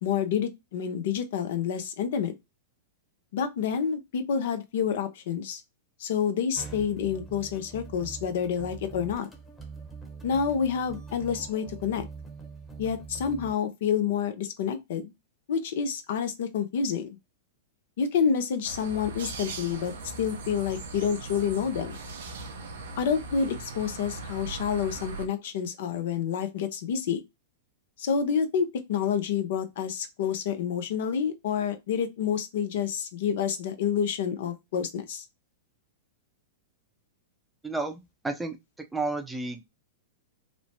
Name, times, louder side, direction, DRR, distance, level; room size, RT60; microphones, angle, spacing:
voice 1, 0.0-2.3 3.3-5.6 6.0-9.3 10.2-12.0 12.8-15.1 15.5-17.2 18.0-19.9 20.2-22.0 23.0-27.2 28.0-35.3, left 7 dB, 65° left, 0.5 m, -28 dB
sound 1, 6.5-13.5, right 5 dB, 10° left, 0.9 m, -43 dB
sound 2, 18.6-25.3, right 3 dB, 70° right, 0.6 m, -39 dB
voice 2, 37.6-38.6 38.9-39.6, right 3 dB, 10° right, 0.5 m, -31 dB
3.1 x 2.0 x 2.6 m
hypercardioid pair, 105°, 0 cm